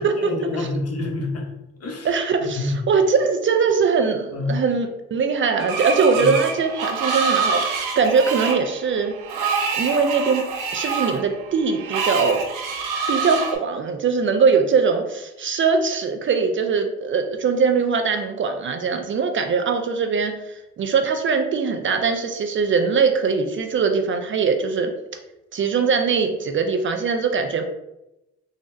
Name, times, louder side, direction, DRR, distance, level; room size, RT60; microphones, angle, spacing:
voice 1, 0.0-1.5 1.8-2.1 2.4-2.8 4.3-4.6 6.2-6.3, left 2 dB, 50° left, 0 dB, 0.9 m, -27 dB
voice 2, 2.0-9.2 9.7-10.5 10.7-12.4 13.1-24.9 25.5-27.6, right 5 dB, 40° right, 6 dB, 0.4 m, -21 dB
Screech, 5.6-13.6, right 5 dB, 80° right, 0.7 m, -26 dB
3.8 x 2.0 x 2.6 m, 0.91 s
cardioid pair, 85°, 31 cm